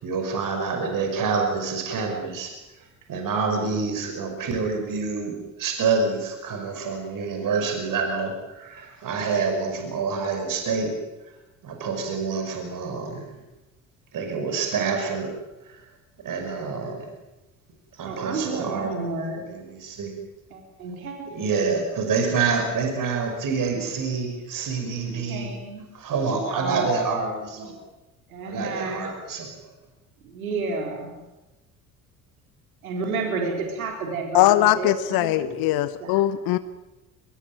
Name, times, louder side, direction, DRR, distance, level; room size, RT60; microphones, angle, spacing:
voice 1, 0.0-2.5 3.1-10.9 11.6-13.3 14.1-15.3 15.6-15.8 16.2-17.0 17.9-20.1 21.2-25.5 25.9-27.7 28.4-29.5, right 4 dB, 50° right, 4 dB, 5.7 m, -27 dB
voice 2, 18.1-19.4 20.5-21.7 25.3-25.8 26.5-26.9 28.3-29.0 30.3-31.1 32.8-34.5 34.8-35.6 36.0-36.1, right 4 dB, 80° right, 2 dB, 4.3 m, -31 dB
voice 3, 34.3-36.6, left 14 dB, 55° left, 14 dB, 1.0 m, -20 dB
23.5 x 21.5 x 9.2 m, 1.0 s
figure-of-eight pair, 55°, 42 cm